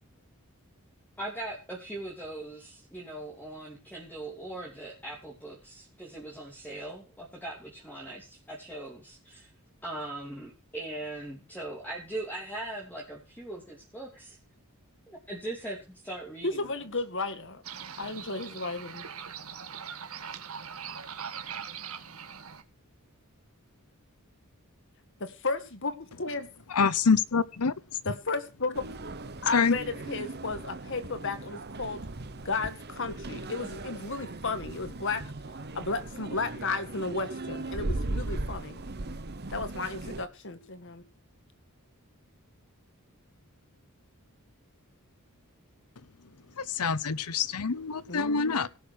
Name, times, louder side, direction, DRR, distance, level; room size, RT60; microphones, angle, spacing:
voice 1, 1.2-9.5 9.8-14.4 15.1-16.7, right 1 dB, 10° left, -3 dB, 3.1 m, -40 dB
voice 2, 16.4-17.6 18.0-19.1 25.2-26.5 28.1-28.9 29.4-32.0 32.4-35.2 35.7-38.8 39.5-41.0 48.1-48.7, left 3 dB, 55° left, 10 dB, 2.0 m, -33 dB
sound 1, 17.6-22.6, right 7 dB, 70° right, 1.6 m, -41 dB
voice 3, 26.7-27.7 29.5-29.8 46.7-48.7, left 5 dB, 85° left, 18 dB, 0.9 m, -26 dB
sound 2, 28.7-40.2, right 2 dB, 45° right, 1.1 m, -38 dB
17.5 x 6.5 x 6.4 m, 0.32 s
head